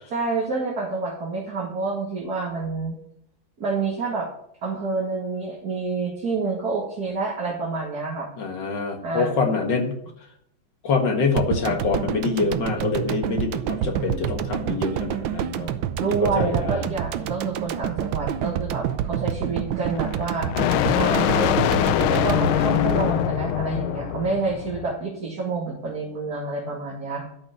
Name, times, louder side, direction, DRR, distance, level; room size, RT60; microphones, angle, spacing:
voice 1, 0.1-3.0 3.6-4.3 4.6-8.3 9.0-9.6 9.9-10.1 16.0-20.5 20.8-21.6 22.1-27.3, right 4 dB, 50° right, -4 dB, 2.5 m, -28 dB
voice 2, 8.4-9.9 10.8-15.7 16.0-16.9, left 4 dB, 65° left, 3 dB, 2.3 m, -25 dB
sound 1, 11.4-23.7 24.0-24.1, right 9 dB, 75° right, 1.5 m, -28 dB
sound 2, 19.9-24.9, left 11 dB, 90° left, 1.5 m, -23 dB
12.5 x 6.2 x 8.8 m, 0.74 s
omnidirectional pair, 2.2 m